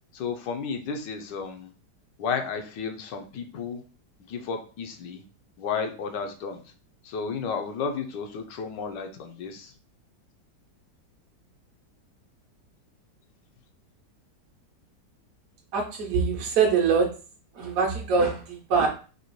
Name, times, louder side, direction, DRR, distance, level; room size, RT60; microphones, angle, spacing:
voice 1, 0.1-1.7 2.2-3.8 4.3-5.2 5.6-6.6 7.0-9.7, left 5 dB, 85° left, 5 dB, 1.3 m, -32 dB
voice 2, 15.7-17.1 17.5-18.9, right 5 dB, 60° right, -1 dB, 1.1 m, -23 dB
4.1 x 2.8 x 3.0 m, 0.37 s
omnidirectional pair, 1.9 m